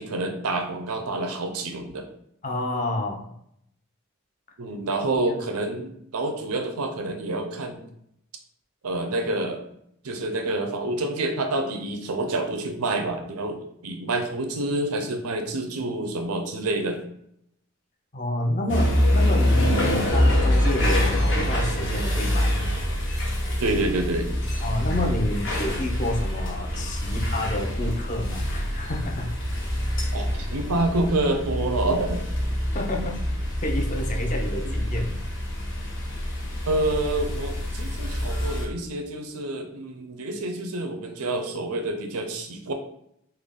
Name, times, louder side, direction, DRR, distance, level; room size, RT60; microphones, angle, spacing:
voice 1, 0.0-2.1 4.6-7.9 8.8-9.6 10.0-17.0 23.6-24.3 30.1-32.2 34.6-34.7 36.7-42.7, right 2 dB, 85° right, 6 dB, 0.6 m, -28 dB
voice 2, 2.4-3.3 5.1-5.2 18.1-22.5 24.6-29.4 32.7-33.1 33.6-35.1 36.4-36.5, left 1 dB, 35° left, 1 dB, 0.5 m, -29 dB
sound 1, 18.7-38.7, equal, 55° left, 0.9 m, -25 dB
3.4 x 2.2 x 3.6 m, 0.72 s
head